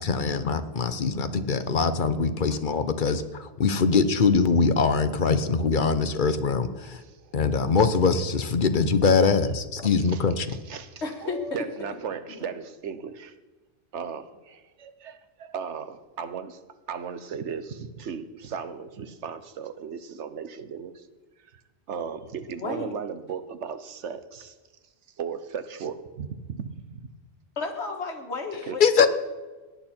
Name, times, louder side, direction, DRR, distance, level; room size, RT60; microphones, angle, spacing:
voice 1, 0.0-7.0 7.3-10.6 28.8-29.1, left 5 dB, 50° left, 10 dB, 0.9 m, -23 dB
voice 2, 1.1-1.4 2.5-2.6 6.9-7.3 8.8-8.9 9.8-10.2 10.5-13.3 13.9-15.2 15.5-16.6 16.9-21.1 21.5-21.6 21.9-24.6 25.2-27.1 28.7-28.8, right 6 dB, 80° right, 11 dB, 1.2 m, -36 dB
voice 3, 11.0-11.6 12.3-12.5 22.6-22.9 27.6-28.8, left 4 dB, 70° left, 3 dB, 2.0 m, -32 dB
17.5 x 10.5 x 4.4 m, 1.3 s
omnidirectional pair, 1.2 m